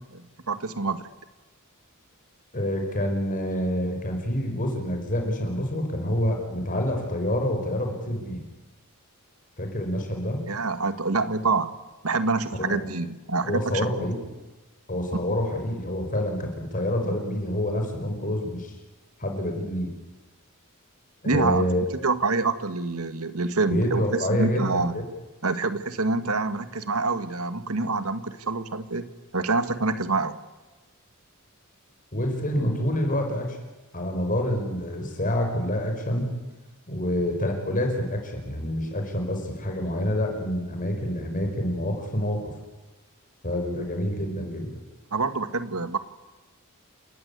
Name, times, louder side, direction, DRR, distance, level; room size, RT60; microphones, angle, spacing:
voice 1, 0.1-1.0 10.5-11.7 12.0-14.1 21.2-21.6 22.0-24.0 24.3-25.0 25.4-30.4 45.1-46.0, right 3 dB, 80° right, 11 dB, 1.8 m, -26 dB
voice 2, 2.5-8.4 9.6-10.4 12.5-12.8 13.4-14.2 14.9-18.7 19.2-19.9 21.2-21.9 23.7-25.0 32.1-33.6 33.9-36.3 36.9-42.5 43.4-44.8, left 1 dB, 40° left, 3 dB, 5.3 m, -27 dB
28.5 x 16.5 x 9.7 m, 1.1 s
head